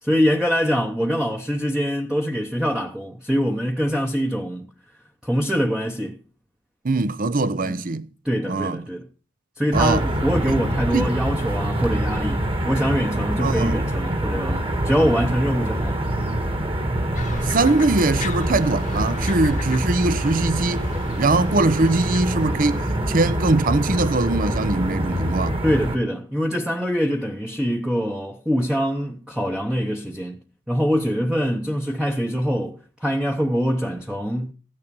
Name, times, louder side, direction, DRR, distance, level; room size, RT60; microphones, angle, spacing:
voice 1, 0.0-4.7 5.2-6.2 7.6-7.8 8.2-9.1 9.6-16.0 25.6-30.4 30.7-34.5, equal, 5° right, 0.9 m, -24 dB
voice 2, 6.8-8.1 8.5-8.8 9.7-10.0 10.5-10.6 10.9-11.1 13.4-13.8 17.4-20.9 21.2-22.8 23.1-25.6, right 2 dB, 40° right, 0.7 m, -21 dB
sound 1, 9.7-26.0, right 1 dB, 25° right, 1.6 m, -25 dB
sound 2, 17.1-22.2, left 4 dB, 40° left, 1.1 m, -36 dB
15.0 x 9.8 x 5.3 m
head